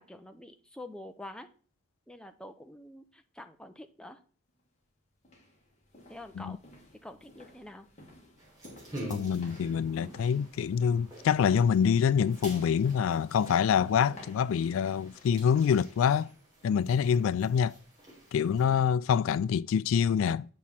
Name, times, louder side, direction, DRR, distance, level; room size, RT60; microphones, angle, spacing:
voice 1, 0.0-1.5 2.1-4.2 6.1-6.6 7.0-7.9 17.1-17.4, left 1 dB, 5° left, 0.5 m, -47 dB
sound 1, 4.5-4.6 5.2-16.4 16.8-17.0 17.5-17.6, equal, 35° left, 2.0 m, -54 dB
sound 2, 8.4-18.7, right 1 dB, 20° right, 3.7 m, -48 dB
voice 2, 9.1-16.3 16.6-17.7 18.3-20.5, left 7 dB, 90° left, 0.3 m, -26 dB
8.7 x 6.1 x 4.2 m
head